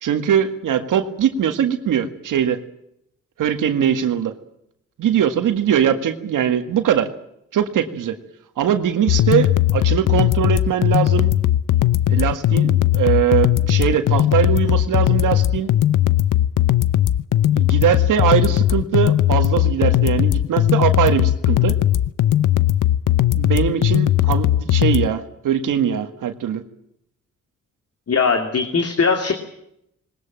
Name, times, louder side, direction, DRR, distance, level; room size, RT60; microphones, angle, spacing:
voice 1, 0.0-2.6 3.4-4.3 5.0-7.1 7.5-8.2 8.6-11.3 12.1-15.7 17.5-21.7 23.3-26.6, right 9 dB, 85° right, 8 dB, 1.9 m, -21 dB
sound 1, 9.1-25.1, left 12 dB, 80° left, 0.8 m, -18 dB
voice 2, 28.1-29.3, left 5 dB, 50° left, 6 dB, 2.8 m, -19 dB
21.0 x 19.5 x 8.9 m, 0.77 s
cardioid pair, 70°, 31 cm